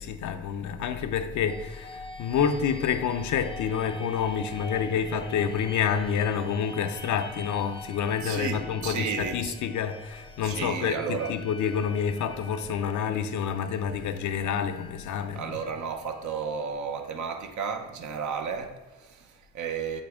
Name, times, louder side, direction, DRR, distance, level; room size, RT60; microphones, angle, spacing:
voice 1, 0.0-15.6, left 7 dB, 75° left, 0.6 m, -28 dB
sound 1, 1.5-17.1, left 2 dB, 15° left, 0.5 m, -45 dB
voice 2, 8.2-9.5 10.4-11.3 15.3-20.0, right 6 dB, 70° right, 0.8 m, -33 dB
7.5 x 4.1 x 3.6 m
cardioid pair, 90°, 30 cm